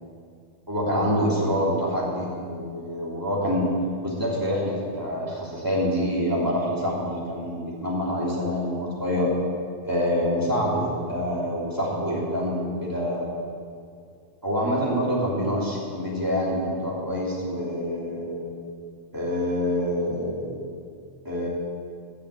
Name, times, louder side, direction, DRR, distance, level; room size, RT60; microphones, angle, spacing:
voice 1, 0.7-3.7 4.0-9.3 9.8-13.3 14.4-18.4 19.1-20.5 21.2-21.5, equal, 15° right, -6 dB, 3.1 m, -26 dB
13.5 x 6.7 x 8.3 m, 2.2 s
omnidirectional pair, 1.3 m